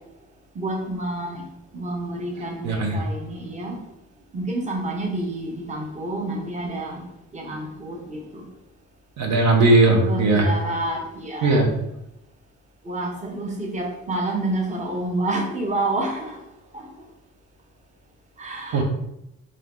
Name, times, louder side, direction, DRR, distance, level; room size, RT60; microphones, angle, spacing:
voice 1, 0.6-1.4 1.7-3.8 4.3-7.0 7.3-8.4 9.8-11.7 12.9-16.4 16.7-16.8 18.4-18.8, right 2 dB, 25° right, 0 dB, 0.7 m, -29 dB
voice 2, 2.6-3.0 9.2-10.5 11.4-11.7 18.7-18.8, right 2 dB, 65° right, 1 dB, 0.7 m, -18 dB
2.7 x 2.4 x 3.5 m, 0.84 s
cardioid pair, 90°, 30 cm